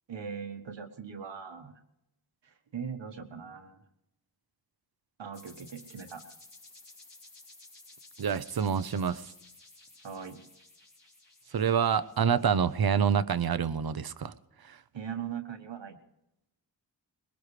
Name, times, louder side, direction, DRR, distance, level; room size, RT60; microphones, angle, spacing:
voice 1, 0.1-1.7 2.4-3.8 5.2-6.2 10.0-10.4 14.9-16.0, right 7 dB, 75° right, 5 dB, 1.5 m, -40 dB
sound 1, 5.3-13.1, left 2 dB, 65° left, 3.8 m, -55 dB
voice 2, 8.2-9.3 11.5-14.3 14.6-14.8, right 7 dB, 55° right, 15 dB, 0.7 m, -27 dB
21.0 x 19.0 x 3.3 m, 0.87 s
cardioid pair, 55°, 44 cm